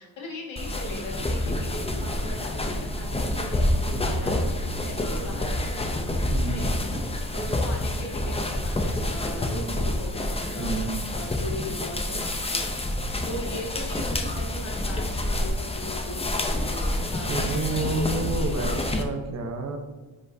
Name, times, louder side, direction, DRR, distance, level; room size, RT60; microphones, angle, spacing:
voice 1, 0.0-4.5 4.8-5.9 6.4-6.7 7.3-18.1 18.3-18.6, left 1 dB, 85° left, -1 dB, 1.9 m, -39 dB
sound 1, 0.6-19.0, left 1 dB, 15° left, 0.5 m, -28 dB
sound 2, 3.5-7.6, right 1 dB, 70° right, 1.0 m, -39 dB
voice 2, 6.3-6.7 10.6-11.0 16.8-17.0 17.3-19.8, right 2 dB, 35° right, 3 dB, 0.8 m, -30 dB
9.7 x 5.6 x 2.6 m, 1.3 s
wide cardioid pair, 180°, 46 cm